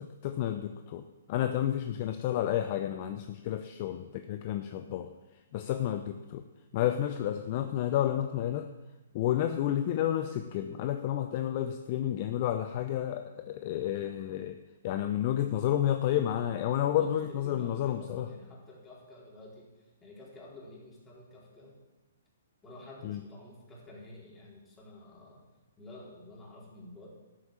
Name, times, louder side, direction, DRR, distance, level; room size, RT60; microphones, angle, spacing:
voice 1, 0.0-5.1 5.5-6.4 6.7-8.7 9.1-14.6 14.8-18.3 23.0-23.2, left 11 dB, 40° left, 8 dB, 0.7 m, -31 dB
voice 2, 16.9-21.8 22.6-25.4 25.8-27.1, left 2 dB, 15° left, -4 dB, 4.4 m, -50 dB
12.5 x 7.9 x 7.4 m, 1.1 s
figure-of-eight pair, 125°, 0 cm